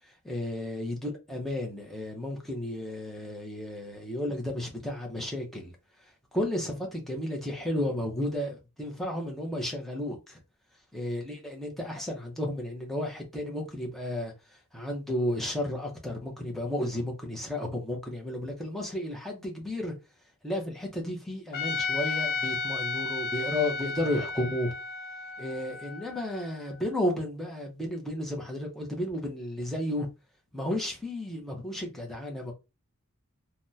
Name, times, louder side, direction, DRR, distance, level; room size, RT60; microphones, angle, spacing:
voice 1, 0.2-5.7 6.3-10.4 10.9-14.3 14.7-19.9 20.4-24.7 25.4-30.1 30.5-32.5, left 1 dB, ahead, 0.8 m, -33 dB
Trumpet, 21.5-26.7, left 4 dB, 45° left, 0.5 m, -33 dB
3.4 x 2.2 x 2.7 m
head